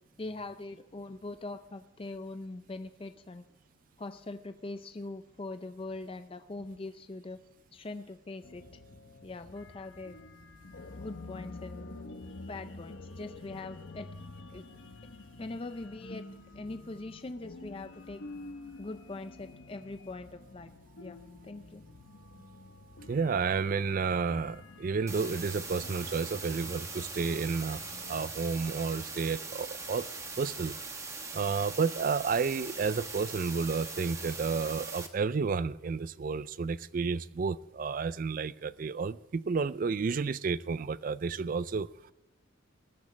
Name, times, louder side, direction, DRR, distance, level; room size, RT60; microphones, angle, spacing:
voice 1, 0.2-3.4 4.0-7.4 7.7-8.8 9.2-10.2 11.0-11.9 12.5-14.1 14.5-14.6 15.4-16.2 16.5-18.2 18.8-20.7 21.0-21.2 21.4-21.8, left 2 dB, 25° left, 9 dB, 0.4 m, -42 dB
sound 1, 8.4-28.3, left 2 dB, 70° left, 0.9 m, -48 dB
voice 2, 23.1-30.1 30.4-30.8 31.3-42.1, right 5 dB, 40° right, 18 dB, 0.3 m, -31 dB
sound 2, 25.1-35.1, right 4 dB, 15° right, 1.0 m, -41 dB
20.0 x 12.5 x 3.2 m, 1.1 s
head